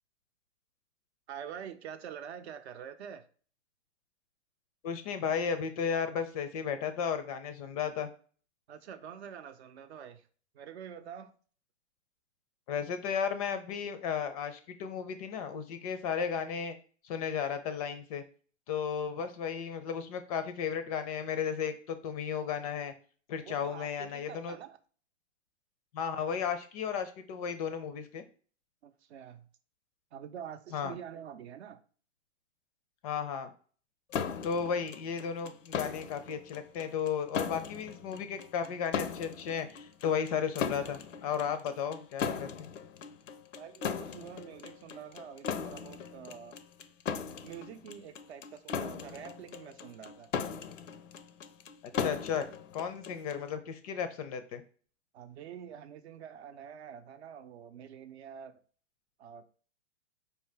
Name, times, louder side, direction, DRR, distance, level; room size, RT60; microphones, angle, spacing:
voice 1, 1.3-3.3 8.7-10.3 10.5-11.3 23.5-24.8 28.8-29.5 30.1-31.8 43.6-46.6 47.4-50.3 55.1-58.6 59.2-59.4, right 8 dB, 60° right, 10 dB, 0.6 m, -46 dB
voice 2, 4.8-8.1 12.7-16.8 17.0-18.2 18.7-22.9 23.3-24.5 25.9-28.2 30.7-31.0 33.0-33.5 34.4-42.7 52.0-52.5 52.7-54.6, left 7 dB, 30° left, 10 dB, 0.4 m, -34 dB
sound 1, 34.1-53.5, left 6 dB, 85° left, 0.6 m, -38 dB
4.5 x 2.8 x 3.3 m, 0.42 s
hypercardioid pair, 120°, 37 cm